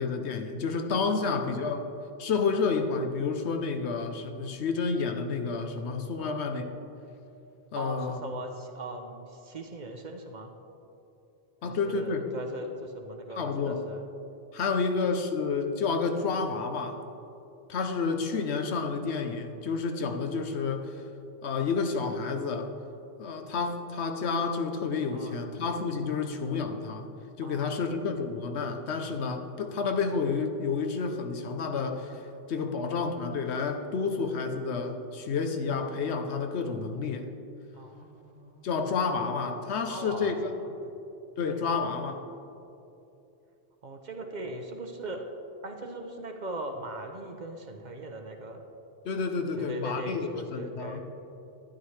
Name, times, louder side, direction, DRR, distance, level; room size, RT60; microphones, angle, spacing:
voice 1, 0.0-1.8 2.2-6.6 7.7-8.2 11.6-12.2 13.4-13.8 14.5-17.0 17.7-20.9 21.4-22.7 23.2-27.1 27.4-32.2 32.5-37.3 38.6-40.3 41.4-42.2 49.0-50.2 50.5-51.0, left 4 dB, 80° left, 5 dB, 1.0 m, -30 dB
voice 2, 1.1-1.6 6.2-6.5 7.7-10.5 11.7-14.0 15.1-15.2 25.1-25.5 27.4-27.9 32.6-33.2 37.7-38.7 39.9-40.6 40.8-41.0 41.5-41.8 43.8-45.2 45.6-48.6 49.6-51.0, right 1 dB, 50° right, 4 dB, 0.7 m, -40 dB
12.0 x 9.7 x 3.2 m, 2.8 s
omnidirectional pair, 1.1 m